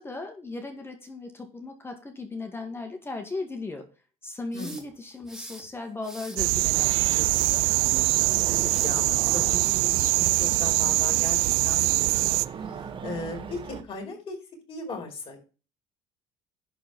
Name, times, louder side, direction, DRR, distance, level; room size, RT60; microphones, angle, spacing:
voice 1, 0.0-3.8 4.2-7.7, left 3 dB, 15° left, 4 dB, 2.1 m, -37 dB
sound 1, 4.5-5.6 6.0-6.4 7.1-7.7 8.7-9.0 10.2-10.6, right 1 dB, 5° right, 3.2 m, -43 dB
sound 2, 6.4-12.4, right 23 dB, 90° right, 0.4 m, -23 dB
sound 3, 6.7-13.8, right 7 dB, 35° right, 1.3 m, -38 dB
voice 2, 8.0-12.2 12.5-14.4 14.7-15.4, left 3 dB, 40° left, 1 dB, 4.9 m, -38 dB
11.0 x 4.7 x 6.1 m, 0.33 s
cardioid pair, 110°, 14 cm